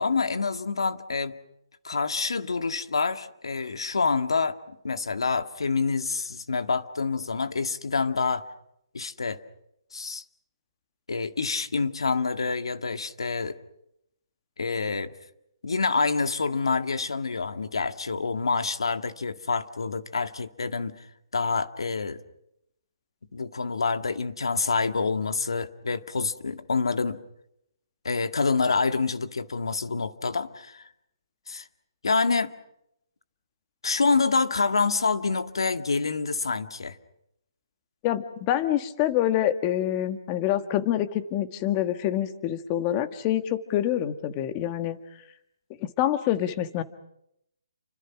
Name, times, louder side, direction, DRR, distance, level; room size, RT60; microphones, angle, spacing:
voice 1, 0.0-1.4 1.8-8.5 8.9-9.4 9.9-10.2 11.1-13.6 14.6-15.1 15.6-21.1 21.3-22.2 23.3-27.2 28.0-30.9 31.5-31.7 32.0-32.5 33.8-37.0, left 4 dB, 90° left, 9 dB, 2.1 m, -27 dB
voice 2, 38.0-45.0 45.8-46.8, left 12 dB, 25° left, 11 dB, 1.6 m, -26 dB
29.5 x 26.0 x 6.1 m, 0.78 s
hypercardioid pair, 165°, 3 cm